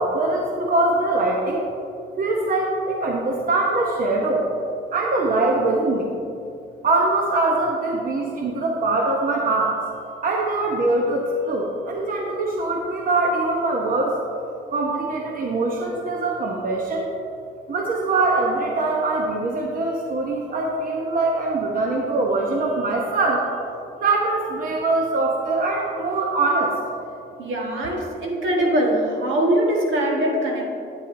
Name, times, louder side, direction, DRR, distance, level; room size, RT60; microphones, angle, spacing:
voice 1, 0.0-1.7 2.2-4.5 4.9-6.2 6.8-9.8 10.2-14.2 14.7-17.1 17.7-23.5 24.0-26.8, right 2 dB, 45° right, 0 dB, 0.9 m, -22 dB
voice 2, 27.4-30.6, right 1 dB, 75° right, -1 dB, 1.5 m, -22 dB
8.9 x 8.2 x 2.7 m, 2.7 s
cardioid pair, 90°, 20 cm